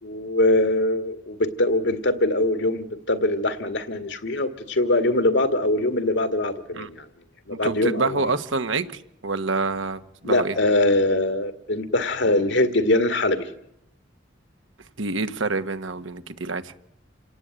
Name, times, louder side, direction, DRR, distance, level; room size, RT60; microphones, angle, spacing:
voice 1, 0.0-7.1 7.5-8.3 10.2-13.5, left 1 dB, 65° left, 10 dB, 1.9 m, -22 dB
voice 2, 7.5-10.5 15.0-16.7, right 3 dB, 80° right, 9 dB, 1.4 m, -27 dB
28.0 x 18.0 x 9.0 m, 0.80 s
head